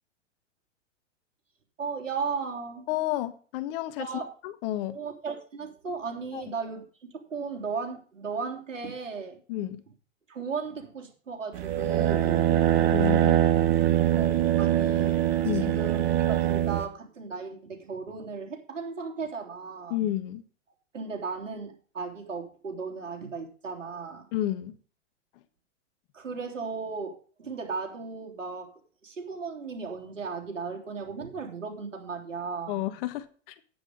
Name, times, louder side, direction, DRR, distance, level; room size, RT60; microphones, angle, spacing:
voice 1, 1.8-2.8 4.0-4.3 4.9-9.4 10.3-12.5 14.1-15.2 15.6-20.0 20.9-24.3 26.1-28.7 29.0-32.8, right 5 dB, 85° right, 1 dB, 3.4 m, -36 dB
voice 2, 2.9-4.1 4.4-5.0 6.3-6.4 9.5-9.8 12.5-12.6 12.9-13.4 15.4-15.8 19.9-20.4 24.3-24.7 32.7-33.5, left 14 dB, 50° left, 11 dB, 1.5 m, -31 dB
sound 1, 11.5-16.9, right 12 dB, 45° right, 2.1 m, -23 dB
10.0 x 8.9 x 5.2 m, 0.40 s
hypercardioid pair, 105°, 37 cm